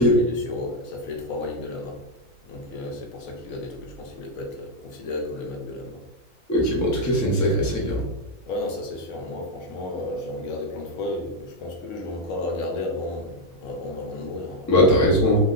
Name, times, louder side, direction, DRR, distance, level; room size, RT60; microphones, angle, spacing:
voice 1, 0.0-2.0 2.4-6.0 8.5-14.7, left 2 dB, 70° left, 0 dB, 1.0 m, -33 dB
voice 2, 6.5-8.1 14.7-15.4, left 1 dB, 30° left, -4 dB, 0.3 m, -19 dB
2.8 x 2.1 x 3.7 m, 0.93 s
omnidirectional pair, 1.6 m